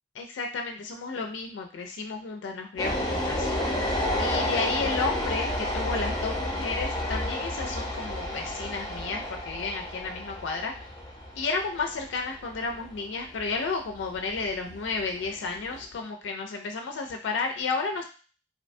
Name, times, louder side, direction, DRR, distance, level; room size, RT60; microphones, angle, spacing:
voice 1, 0.2-3.5 4.2-10.7 11.4-18.0, left 4 dB, 75° left, 3 dB, 0.4 m, -32 dB
sound 1, 2.8-15.9, left 1 dB, 20° left, 0.5 m, -31 dB
2.7 x 2.1 x 2.5 m, 0.37 s
head